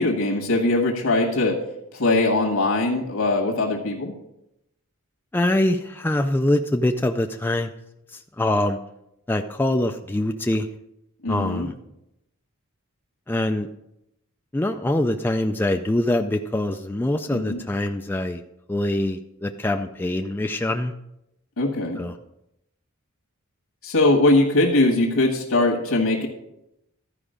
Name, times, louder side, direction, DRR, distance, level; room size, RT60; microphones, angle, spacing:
voice 1, 0.0-1.6 1.9-4.1 11.2-11.7 17.3-17.6 21.6-22.0 23.8-26.3, left 2 dB, 80° left, -1 dB, 1.5 m, -21 dB
voice 2, 5.3-7.7 8.1-8.8 9.3-10.7 11.3-11.7 13.3-13.7 14.5-18.4 18.7-20.9 22.0-22.1, left 1 dB, 10° left, 5 dB, 0.3 m, -24 dB
13.5 x 4.9 x 5.0 m, 0.85 s
head